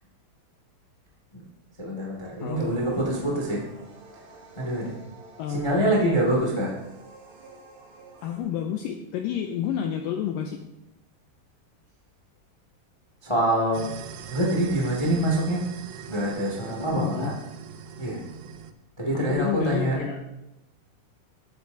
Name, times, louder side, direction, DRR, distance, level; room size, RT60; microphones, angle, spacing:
voice 1, 1.8-3.6 4.5-5.0 5.5-6.8 13.2-13.9 14.3-15.6 16.1-17.3 18.0-18.2 19.0-20.0, right 1 dB, 45° left, -2 dB, 0.4 m, -25 dB
sound 1, 2.6-8.4, right 3 dB, 65° right, 3.8 m, -50 dB
voice 2, 5.4-5.9 8.2-10.6 17.0-17.4 19.1-20.2, left 9 dB, 90° left, 4 dB, 1.9 m, -30 dB
sound 2, 13.7-18.7, right 7 dB, 80° right, 2.6 m, -42 dB
13.5 x 9.1 x 2.7 m, 0.90 s
omnidirectional pair, 4.6 m